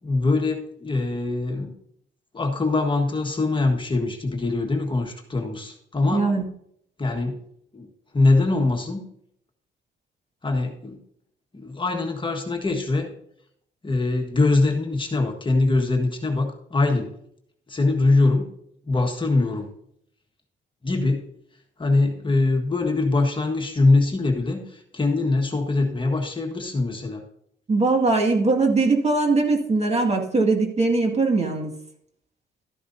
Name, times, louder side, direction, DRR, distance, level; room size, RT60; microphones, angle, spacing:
voice 1, 0.0-1.7 2.3-6.3 7.0-7.4 7.7-7.9 8.1-9.1 10.4-11.0 11.5-13.1 13.8-17.1 17.7-18.5 18.9-19.7 20.8-21.3 21.8-27.2, left 3 dB, 25° left, 2 dB, 1.6 m, -23 dB
voice 2, 6.1-6.4 27.7-31.7, right 3 dB, 30° right, 2 dB, 2.0 m, -21 dB
13.0 x 10.0 x 2.7 m, 0.71 s
cardioid pair, 90°, 20 cm